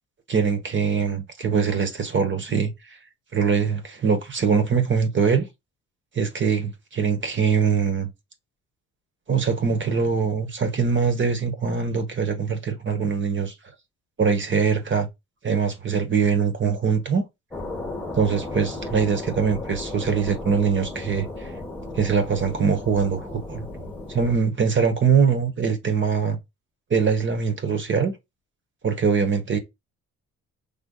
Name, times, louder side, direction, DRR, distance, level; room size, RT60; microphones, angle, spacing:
voice 1, 0.3-3.0 3.3-5.5 6.1-8.1 9.3-13.5 14.2-15.1 15.4-17.2 18.1-21.5 21.9-23.6 24.1-26.4 26.9-28.1 28.8-29.6, right 6 dB, 40° right, 1.2 m, -23 dB
sound 1, 17.5-24.4, left 2 dB, 5° left, 1.3 m, -35 dB
5.1 x 3.4 x 2.3 m
cardioid pair, 90°, 30 cm